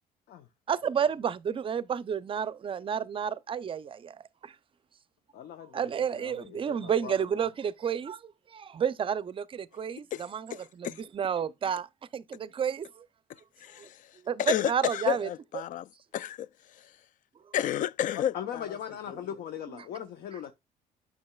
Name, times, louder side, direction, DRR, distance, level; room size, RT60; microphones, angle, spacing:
voice 1, 0.7-4.2 4.4-4.5 5.7-10.5 10.8-10.9 11.1-11.9 12.1-12.9 13.8-13.9 14.3-15.3, right 7 dB, 30° right, 0.5 m, -30 dB
voice 2, 5.3-7.4 18.3-20.5, left 9 dB, 70° left, 0.8 m, -40 dB
voice 3, 10.1-11.0 13.6-16.9 17.5-18.8 19.1-19.3, left 10 dB, 50° left, 0.4 m, -32 dB
8.5 x 5.9 x 2.3 m
cardioid pair, 110°, 17 cm